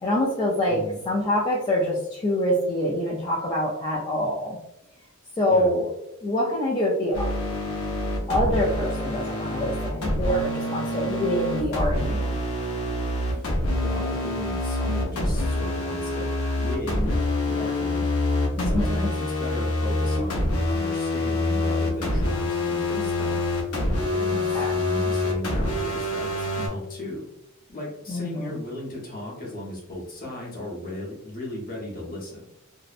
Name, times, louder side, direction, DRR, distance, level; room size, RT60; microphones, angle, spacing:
voice 1, 0.0-4.6 5.4-5.9 6.2-7.3 8.3-12.4 18.6-19.1 24.3-24.7 28.1-28.5, left 1 dB, 20° left, -5 dB, 0.3 m, -25 dB
voice 2, 0.7-1.0 5.5-5.7 13.3-13.5 13.8-16.3 16.6-18.0 18.6-23.4 24.1-27.3 27.7-32.4, left 1 dB, 40° left, -4 dB, 0.9 m, -36 dB
sound 1, 7.1-26.7, left 1 dB, 80° left, 0.6 m, -26 dB
2.6 x 2.0 x 2.4 m, 0.83 s
head